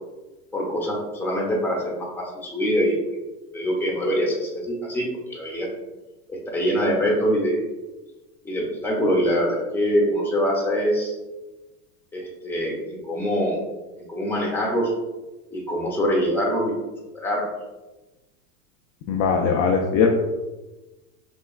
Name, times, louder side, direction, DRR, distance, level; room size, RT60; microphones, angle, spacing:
voice 1, 0.5-3.2 3.5-5.7 6.3-7.7 8.4-11.2 12.1-13.6 14.0-14.9 15.5-16.7 17.1-17.5, equal, 5° left, -4 dB, 0.8 m, -24 dB
voice 2, 19.1-20.1, left 6 dB, 40° left, 1 dB, 0.4 m, -20 dB
3.5 x 3.1 x 2.3 m, 1.1 s
supercardioid pair, 115°, 44 cm